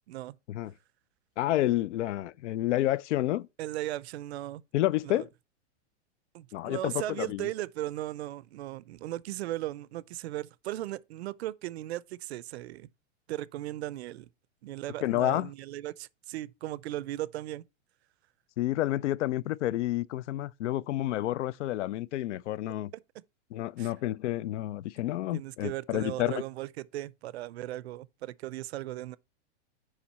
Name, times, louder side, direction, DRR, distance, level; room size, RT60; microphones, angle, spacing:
voice 1, 1.4-3.5 4.7-5.3 6.5-7.5 15.0-15.5 18.6-22.9 23.5-26.4, left 14 dB, 75° left, 0.5 m, -29 dB
voice 2, 3.6-4.6 5.0-5.3 6.3-12.9 13.3-14.3 14.6-17.6 23.8-23.9 25.3-29.2, right 15 dB, 65° right, 0.5 m, -37 dB
7.3 x 5.1 x 4.1 m
supercardioid pair, 165°, 36 cm